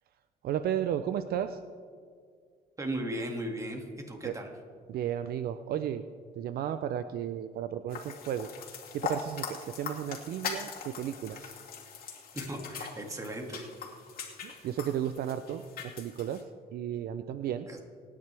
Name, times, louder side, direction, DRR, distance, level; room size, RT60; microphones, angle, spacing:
voice 1, 0.4-1.6 4.2-4.3 4.9-6.0 6.4-8.5 8.9-11.6 14.4-15.6 16.0-16.4 16.7-17.7, right 10 dB, 65° right, 10 dB, 0.6 m, -33 dB
voice 2, 2.8-4.5 12.3-13.7 17.7-17.8, right 1 dB, 20° right, 2 dB, 2.3 m, -36 dB
sound 1, 7.9-16.4, left 6 dB, 60° left, 2.4 m, -41 dB
25.5 x 9.9 x 3.5 m, 2.1 s
cardioid pair, 110°, 17 cm